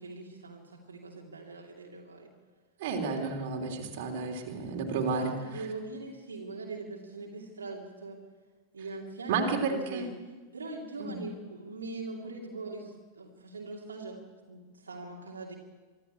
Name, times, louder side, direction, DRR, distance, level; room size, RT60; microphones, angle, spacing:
voice 1, 0.0-2.3 5.1-8.2 8.7-10.1 10.5-14.2 14.5-15.5, right 3 dB, 70° right, -1 dB, 2.7 m, -41 dB
voice 2, 2.8-5.7 9.3-10.1 11.0-11.2, right 4 dB, 50° right, 2 dB, 3.4 m, -32 dB
24.5 x 13.5 x 8.4 m, 1.4 s
figure-of-eight pair, 90°, 0 cm